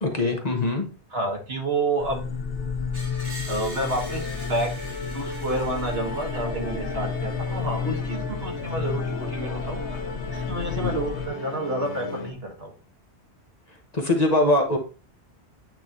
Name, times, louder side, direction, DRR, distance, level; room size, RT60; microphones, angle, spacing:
voice 1, 0.0-0.8 10.8-11.0 13.9-14.8, left 2 dB, 40° left, 3 dB, 1.1 m, -22 dB
voice 2, 1.1-2.2 3.5-4.7 5.1-10.0 10.3-12.7, right 2 dB, 65° right, 0 dB, 1.9 m, -29 dB
sound 1, 2.0-11.3, left 5 dB, 60° left, 1.0 m, -32 dB
Musical instrument, 2.2-12.3, left 3 dB, 85° left, 1.4 m, -36 dB
Screech, 2.9-7.9, equal, 20° right, 2.6 m, -43 dB
9.0 x 3.9 x 3.0 m, 0.33 s
omnidirectional pair, 1.1 m